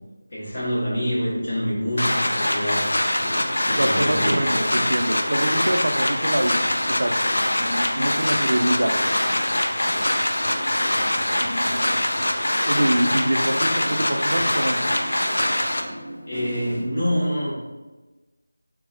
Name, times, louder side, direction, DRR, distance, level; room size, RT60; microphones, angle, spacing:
voice 1, 0.3-4.8 13.8-14.1 16.2-17.6, equal, 40° left, -8 dB, 1.3 m, -27 dB
sound 1, 2.0-15.8, left 1 dB, 75° left, 0.4 m, -23 dB
sound 2, 3.2-16.8, equal, ahead, 0.6 m, -37 dB
voice 2, 3.8-7.1 7.9-8.9 12.7-14.8, right 1 dB, 70° right, 4 dB, 0.4 m, -24 dB
4.0 x 2.0 x 2.7 m, 1.2 s
figure-of-eight pair, 175°, 0 cm